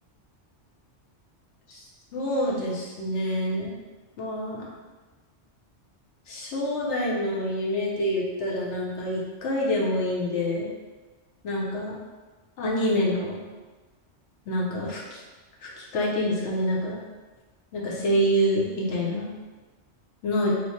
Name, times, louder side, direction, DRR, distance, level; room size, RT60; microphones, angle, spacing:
voice 1, 2.1-3.8 4.2-4.7 6.3-10.7 11.4-11.9 12.6-13.4 14.5-15.2 15.6-17.0 17.7-19.3 20.2-20.5, equal, 75° left, -4 dB, 1.1 m, -27 dB
3.1 x 2.1 x 4.1 m, 1.3 s
omnidirectional pair, 1.2 m